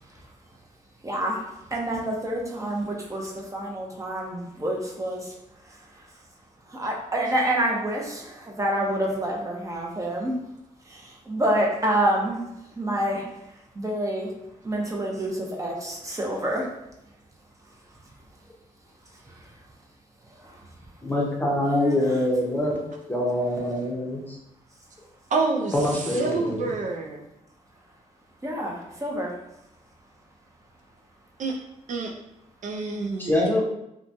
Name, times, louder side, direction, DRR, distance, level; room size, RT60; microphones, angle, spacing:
voice 1, 1.0-5.3 6.7-8.2 8.6-10.3 10.9-12.4 12.8-13.2 13.8-14.3 14.6-16.7 21.7-22.0 23.7-23.9 28.4-28.7 29.0-29.4, right 1 dB, 20° right, -2 dB, 0.7 m, -27 dB
voice 2, 21.0-22.8 23.1-24.2 25.7-26.6 33.3-33.6, left 1 dB, 10° left, -3 dB, 0.7 m, -24 dB
voice 3, 25.3-27.2 31.4-31.6 31.9-32.1 32.6-33.6, right 3 dB, 60° right, 0 dB, 0.4 m, -28 dB
2.9 x 2.2 x 2.6 m, 0.85 s
cardioid pair, 80°, 14 cm